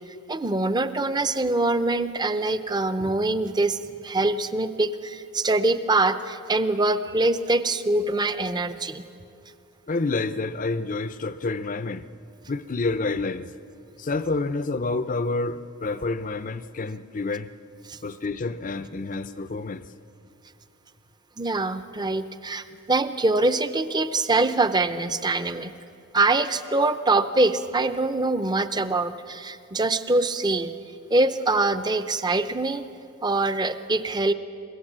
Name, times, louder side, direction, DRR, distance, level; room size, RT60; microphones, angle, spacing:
voice 1, 0.3-9.0 17.9-18.0 21.4-25.7 26.1-30.7 31.1-32.8 33.2-34.3, right 2 dB, 20° right, 11 dB, 0.6 m, -24 dB
voice 2, 9.9-12.1 12.5-13.5 14.0-17.5 18.0-19.9, left 3 dB, 40° left, 13 dB, 0.6 m, -28 dB
24.0 x 16.5 x 7.4 m, 2.6 s
head